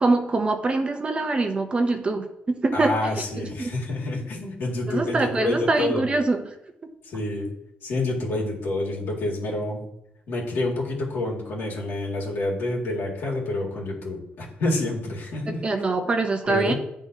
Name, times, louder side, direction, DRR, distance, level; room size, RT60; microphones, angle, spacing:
voice 1, 0.0-3.2 3.6-3.7 4.9-6.5 6.8-6.9 15.5-16.7, right 3 dB, 25° right, 6 dB, 0.6 m, -24 dB
voice 2, 2.7-6.0 7.0-7.5 7.8-9.9 10.3-15.6 16.4-16.7, left 2 dB, 70° left, -3 dB, 2.0 m, -28 dB
10.5 x 3.6 x 2.7 m, 0.81 s
cardioid pair, 140°, 4 cm